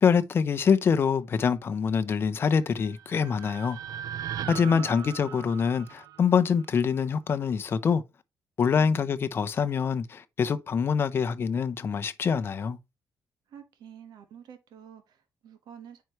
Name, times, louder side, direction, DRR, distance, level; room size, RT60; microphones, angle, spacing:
voice 1, 0.0-3.8 4.5-8.0 8.6-12.8, left 6 dB, 35° left, 0.6 m, -25 dB
sound 1, 2.6-6.9, right 10 dB, 60° right, 0.3 m, -39 dB
voice 2, 4.3-5.0 8.7-9.0 13.5-16.0, right 8 dB, 80° right, 1.3 m, -48 dB
9.3 x 4.6 x 3.0 m
cardioid pair, 175°, 7 cm